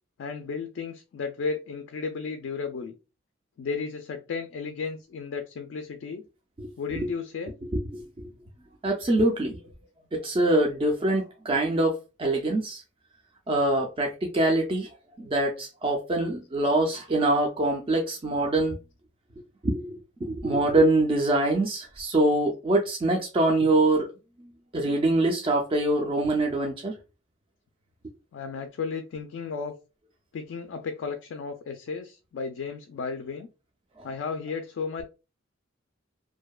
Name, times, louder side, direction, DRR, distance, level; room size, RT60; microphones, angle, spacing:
voice 1, 0.2-2.9 3.6-6.2 6.8-7.5 28.3-29.8 30.3-33.5 34.0-35.0, left 5 dB, 60° left, 0.3 m, -34 dB
voice 2, 7.7-8.0 8.8-9.6 10.1-12.8 13.5-14.9 15.2-18.8 19.6-24.1 24.7-26.9, right 2 dB, 25° right, 0.3 m, -24 dB
2.6 x 2.1 x 2.2 m
head